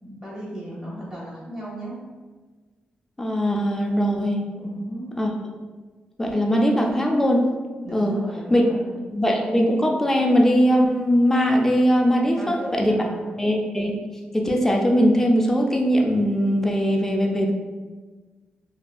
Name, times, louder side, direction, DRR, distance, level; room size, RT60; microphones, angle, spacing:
voice 1, 0.0-2.0 4.6-5.1 7.8-9.0 12.2-12.7 13.0-13.2, right 1 dB, 20° right, -6 dB, 0.8 m, -35 dB
voice 2, 3.2-4.4 5.2-5.3 6.2-7.5 7.9-8.2 8.5-8.7 9.1-12.9 13.4-14.0 14.3-17.5, equal, 10° left, 1 dB, 0.3 m, -20 dB
2.7 x 2.4 x 2.2 m, 1.3 s
wide cardioid pair, 135°, 3 cm